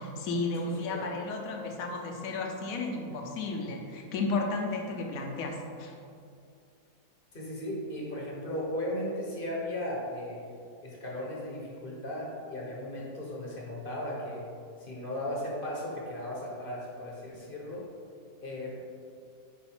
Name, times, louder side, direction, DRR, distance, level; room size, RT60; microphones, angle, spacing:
voice 1, 0.0-5.9, left 3 dB, 65° left, 1 dB, 1.1 m, -33 dB
voice 2, 0.6-1.1 7.3-10.4 10.8-14.4 14.8-17.8 18.4-18.8, left 1 dB, 40° left, -3 dB, 1.0 m, -36 dB
5.0 x 4.8 x 4.3 m, 2.4 s
omnidirectional pair, 1.7 m